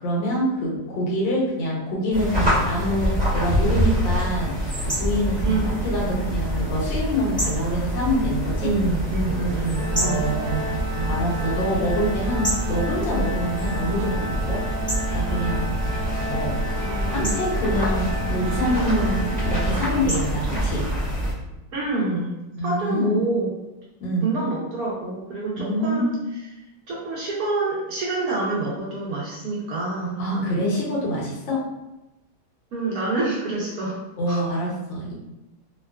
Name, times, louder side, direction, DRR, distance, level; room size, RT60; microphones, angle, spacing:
voice 1, 0.0-4.5 4.8-8.7 10.0-10.6 11.1-14.6 15.1-15.7 16.3-16.6 17.1-20.8 22.6-23.2 24.0-24.3 25.6-26.2 30.2-31.6 34.2-35.1, equal, 85° left, -4 dB, 1.6 m, -25 dB
sound 1, 2.1-21.3, equal, 5° left, 0.7 m, -26 dB
voice 2, 5.4-5.8 8.6-11.6 16.8-17.4 21.7-22.4 22.6-23.5 24.2-26.1 26.9-30.6 32.7-34.0 34.3-34.4, right 3 dB, 70° right, -5 dB, 0.9 m, -27 dB
Organ, 9.7-20.5, right 2 dB, 40° right, 0.4 m, -32 dB
3.5 x 2.2 x 2.3 m, 0.98 s
omnidirectional pair, 2.0 m